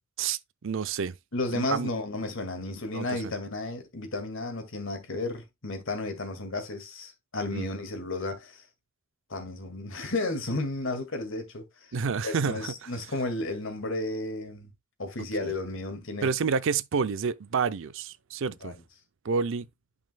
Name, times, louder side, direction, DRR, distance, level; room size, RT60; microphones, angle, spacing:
voice 1, 0.0-1.1 1.5-1.9 2.9-3.3 7.5-7.6 11.9-12.9 15.4-15.5 16.2-18.7 19.2-19.7, right 5 dB, 65° right, 0.5 m, -29 dB
voice 2, 1.3-8.6 9.3-11.9 12.2-14.7 15.0-16.3 18.6-18.8, left 2 dB, 65° left, 2.0 m, -33 dB
11.0 x 5.3 x 2.2 m
head